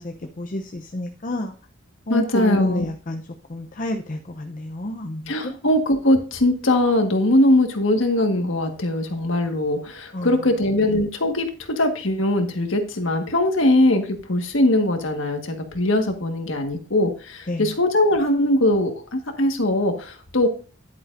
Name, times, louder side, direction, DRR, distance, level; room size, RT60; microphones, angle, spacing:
voice 1, 0.0-1.5 2.1-3.2 3.5-5.5 10.1-10.4 17.5-17.7, left 1 dB, 40° left, 4 dB, 0.6 m, -29 dB
voice 2, 2.1-2.8 5.3-20.5, left 1 dB, 75° left, 5 dB, 1.6 m, -21 dB
11.0 x 8.6 x 2.6 m, 0.37 s
head